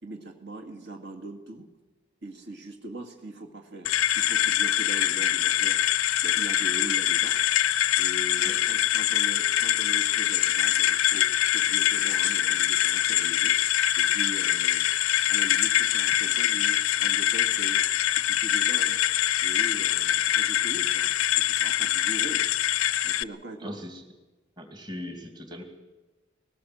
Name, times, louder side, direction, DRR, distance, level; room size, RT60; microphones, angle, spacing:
voice 1, 0.0-1.7 2.2-5.8 6.2-7.4 8.0-13.6 13.9-14.9 15.3-17.8 18.2-19.0 19.4-22.5 23.0-23.8, right 1 dB, 55° right, 2 dB, 2.3 m, -41 dB
sound 1, 3.8-23.2, left 12 dB, 85° left, 0.6 m, -24 dB
voice 2, 23.6-24.0 24.6-25.6, left 1 dB, 20° right, 4 dB, 2.6 m, -39 dB
20.5 x 19.0 x 7.9 m, 1.1 s
head